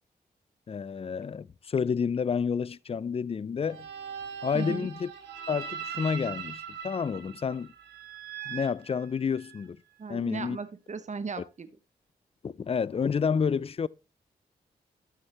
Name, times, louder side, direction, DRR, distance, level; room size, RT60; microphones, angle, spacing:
voice 1, 0.7-3.9 4.4-5.1 5.5-7.7 8.5-9.8 10.1-10.6 12.4-13.9, left 6 dB, 35° left, 0.4 m, -29 dB
sound 1, 3.6-9.6, right 8 dB, 85° right, 1.5 m, -41 dB
voice 2, 4.5-4.9 10.0-11.7, right 5 dB, 45° right, 0.9 m, -37 dB
12.5 x 6.4 x 2.9 m
supercardioid pair, 40°, 17 cm